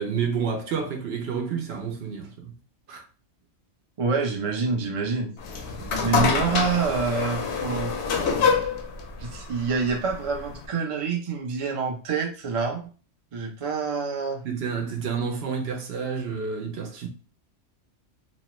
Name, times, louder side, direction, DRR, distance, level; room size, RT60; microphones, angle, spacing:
voice 1, 0.0-2.5 2.9-3.0 5.9-6.0 14.4-17.1, right 6 dB, 65° right, 0.8 m, -29 dB
voice 2, 4.0-5.3 6.0-7.9 9.2-12.8 13.3-14.4, right 5 dB, 45° right, 0.4 m, -27 dB
sound 1, 5.4-10.7, left 5 dB, 70° left, 0.8 m, -26 dB
3.0 x 2.1 x 2.9 m
omnidirectional pair, 1.3 m